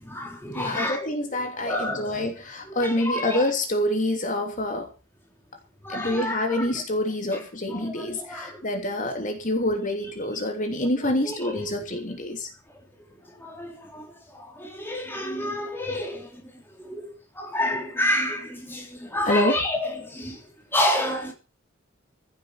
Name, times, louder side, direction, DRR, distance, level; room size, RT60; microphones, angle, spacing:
voice 1, 0.0-1.1 1.6-2.3 2.7-3.5 5.8-6.7 7.7-8.6 11.0-11.6 13.4-20.4 20.7-21.3, left 1 dB, 10° left, 1 dB, 3.6 m, -30 dB
voice 2, 0.5-4.9 5.9-12.5 19.2-19.6, left 1 dB, 40° left, 4 dB, 3.1 m, -27 dB
15.5 x 8.1 x 7.6 m, 0.34 s
head